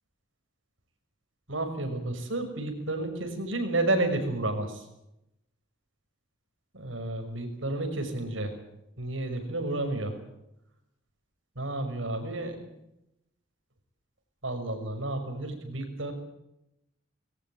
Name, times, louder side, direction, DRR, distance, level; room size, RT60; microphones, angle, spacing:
voice 1, 1.5-4.8 6.7-8.5 9.0-10.1 11.6-12.6 14.4-16.1, right 2 dB, 85° right, 6 dB, 5.9 m, -31 dB
21.5 x 18.5 x 9.0 m, 0.84 s
head